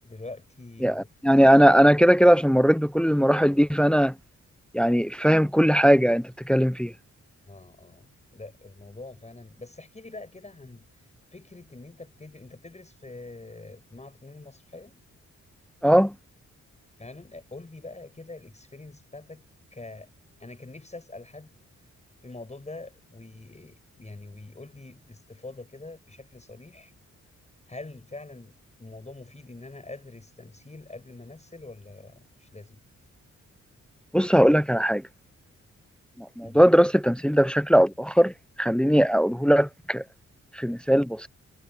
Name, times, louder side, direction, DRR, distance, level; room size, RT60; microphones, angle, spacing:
voice 1, 0.0-1.1 7.5-15.0 17.0-19.4 19.7-20.1 20.4-21.5 22.2-26.9 27.7-32.8 36.4-36.6, left 2 dB, 25° left, 7.3 m, -44 dB
voice 2, 0.8-4.1 4.7-6.9 15.8-16.1 34.1-35.0 36.2-38.3 38.6-40.0 40.6-41.3, equal, 5° left, 0.9 m, -19 dB
cardioid pair, 75°, 30 cm